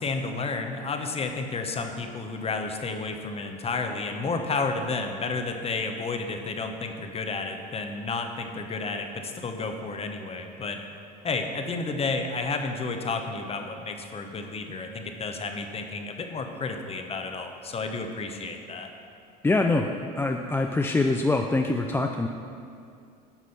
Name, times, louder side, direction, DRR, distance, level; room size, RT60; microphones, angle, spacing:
voice 1, 0.0-10.8 11.2-18.9, left 3 dB, 30° left, 5 dB, 1.0 m, -31 dB
voice 2, 19.4-22.3, left 2 dB, 10° left, 3 dB, 0.4 m, -24 dB
9.8 x 6.2 x 4.2 m, 2.4 s
hypercardioid pair, 80°, 21 cm